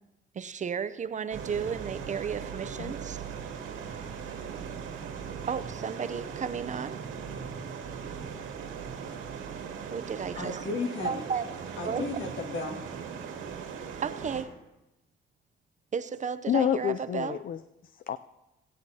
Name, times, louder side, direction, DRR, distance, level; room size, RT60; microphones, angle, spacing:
voice 1, 0.3-3.2 4.4-4.5 5.5-7.0 9.9-10.7 11.0-11.4 11.8-12.0 14.0-14.6 15.9-17.4, right 6 dB, 40° right, 13 dB, 0.6 m, -33 dB
sound 1, 1.3-14.4, right 6 dB, 85° right, 2.0 m, -39 dB
voice 2, 10.4-11.2 11.8-13.0, left 3 dB, 65° left, 3 dB, 1.9 m, -34 dB
voice 3, 16.5-18.2, left 10 dB, 45° left, 12 dB, 0.4 m, -29 dB
22.5 x 8.6 x 2.8 m, 0.95 s
cardioid pair, 90°, 20 cm